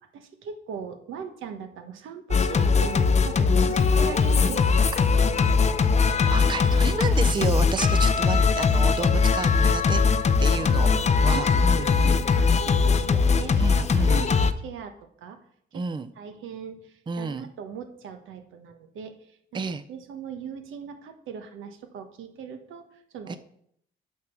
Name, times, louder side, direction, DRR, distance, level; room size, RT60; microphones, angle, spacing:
voice 1, 0.1-5.6 10.6-11.1 11.3-14.9 15.2-15.4 16.2-19.6 19.9-22.8 23.1-23.4, right 7 dB, 80° right, 6 dB, 1.3 m, -39 dB
Singing, 2.3-14.5, left 5 dB, 35° left, 0.6 m, -21 dB
voice 2, 6.3-10.0 10.4-10.9 11.2-12.0 13.5-14.3 15.7-16.1 17.1-17.5 19.5-19.8 23.3-23.4, right 4 dB, 25° right, 12 dB, 0.5 m, -31 dB
8.5 x 5.9 x 6.0 m, 0.69 s
cardioid pair, 90°, 20 cm